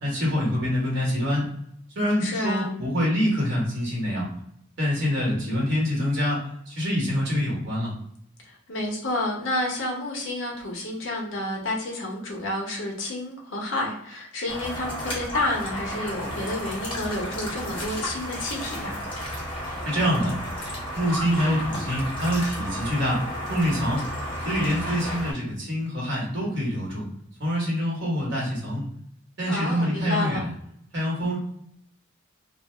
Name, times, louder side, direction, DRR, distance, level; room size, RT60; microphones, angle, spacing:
voice 1, 0.0-1.5 1.9-4.3 4.8-7.9 19.8-20.3 20.9-23.2 23.5-24.0 24.4-27.0 27.4-28.9 29.4-30.5 30.9-31.4, equal, 60° right, -4 dB, 1.2 m, -25 dB
voice 2, 2.2-2.7 8.4-19.0 29.5-30.4, left 1 dB, 70° left, -1 dB, 0.9 m, -30 dB
sound 1, 14.5-25.3, equal, 25° left, 0.9 m, -33 dB
2.7 x 2.1 x 3.2 m, 0.71 s
head